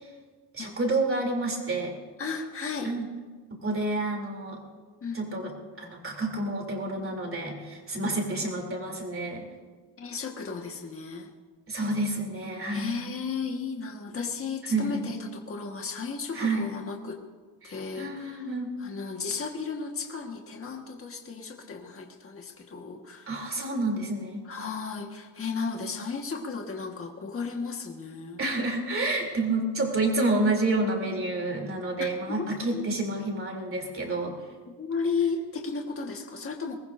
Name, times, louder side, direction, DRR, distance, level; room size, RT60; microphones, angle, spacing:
voice 1, 0.5-2.0 2.8-3.1 3.6-4.6 5.1-5.5 5.8-9.5 11.7-12.9 14.7-15.0 16.3-16.7 17.6-18.7 23.3-24.4 28.4-34.4, right 2 dB, 30° right, 1 dB, 3.0 m, -29 dB
voice 2, 2.2-2.9 5.0-5.5 10.0-11.3 12.7-17.2 17.6-18.5 18.8-23.5 24.4-28.4 32.3-32.9 34.8-36.7, left 5 dB, 30° left, 1 dB, 1.5 m, -34 dB
23.5 x 19.0 x 2.6 m, 1.4 s
wide cardioid pair, 160°, 44 cm